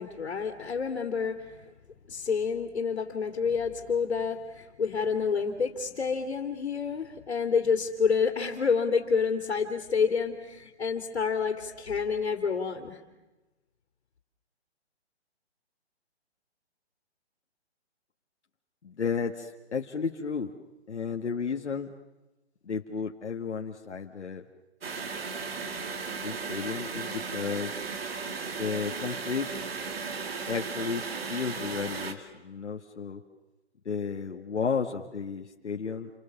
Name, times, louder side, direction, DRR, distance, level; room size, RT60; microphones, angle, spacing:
voice 1, 0.0-1.7 2.1-13.0, left 5 dB, 65° left, 5 dB, 3.2 m, -28 dB
voice 2, 18.8-20.5 20.9-21.9 22.7-24.4 26.2-27.8 28.6-29.5 30.5-33.2 33.9-36.1, left 6 dB, 85° left, 3 dB, 1.9 m, -33 dB
sound 1, 24.8-32.1, right 5 dB, 60° right, 2.9 m, -36 dB
29.0 x 25.5 x 7.2 m, 1.1 s
hypercardioid pair, 160°, 34 cm